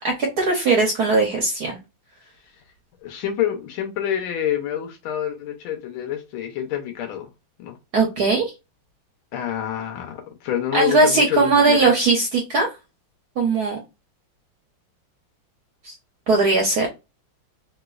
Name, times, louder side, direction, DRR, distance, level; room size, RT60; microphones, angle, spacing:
voice 1, 0.0-1.8 7.9-8.5 10.7-12.7 13.4-13.8 15.8-15.9 16.3-16.9, right 3 dB, 60° right, 1.1 m, -19 dB
voice 2, 3.0-7.3 7.6-7.8 9.3-11.9, left 10 dB, 85° left, 1.5 m, -27 dB
3.3 x 3.0 x 2.3 m
omnidirectional pair, 2.2 m